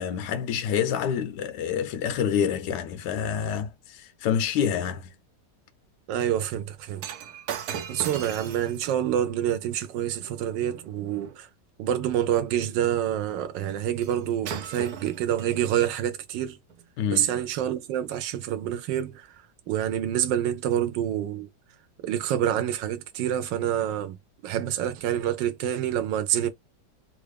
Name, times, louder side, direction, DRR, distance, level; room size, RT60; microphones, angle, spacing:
voice 1, 0.0-5.1 17.0-17.4, left 8 dB, 80° left, 1.3 m, -27 dB
voice 2, 6.1-7.0 7.9-11.5 11.8-16.6 17.1-21.5 22.0-24.2 24.4-26.5, right 10 dB, 90° right, 1.3 m, -27 dB
Shatter, 7.0-11.4 14.0-14.2 14.5-16.0 16.7-16.8, right 8 dB, 65° right, 1.1 m, -39 dB
3.5 x 2.4 x 3.2 m
omnidirectional pair, 1.9 m